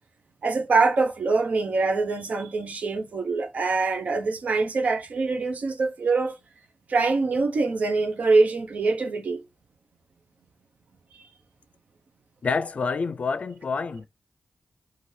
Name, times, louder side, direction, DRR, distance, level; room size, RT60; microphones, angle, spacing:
voice 1, 0.4-6.4 6.9-9.4, right 3 dB, 75° right, 0.6 m, -24 dB
voice 2, 12.4-14.1, left 4 dB, 65° left, 0.4 m, -27 dB
3.1 x 2.5 x 2.7 m
cardioid pair, 55°, 3 cm